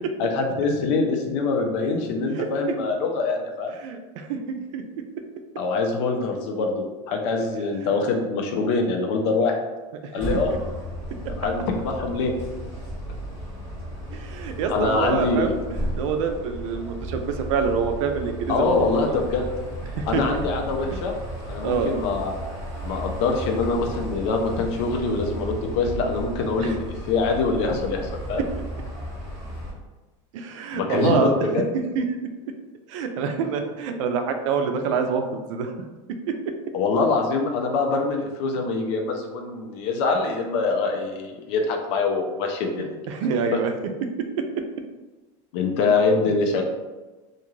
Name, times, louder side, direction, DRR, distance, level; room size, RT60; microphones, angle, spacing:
voice 1, 0.2-3.7 5.6-9.6 10.1-10.6 11.4-12.3 14.7-15.5 18.5-19.4 20.1-21.1 21.5-22.3 22.8-28.4 30.7-31.6 36.7-42.9 43.5-43.6 45.5-46.6, left 3 dB, 65° left, 2 dB, 0.6 m, -24 dB
voice 2, 3.7-4.8 7.8-8.0 14.1-15.5 16.0-19.2 20.0-20.2 21.6-21.9 26.6-26.8 28.6-28.7 30.3-31.3 32.0-32.1 32.9-35.7 43.1-43.7, right 5 dB, 85° right, 6 dB, 0.4 m, -26 dB
sound 1, 10.2-29.7, equal, 15° left, 1.3 m, -34 dB
2.5 x 2.4 x 3.0 m, 1.2 s
supercardioid pair, 155°, 16 cm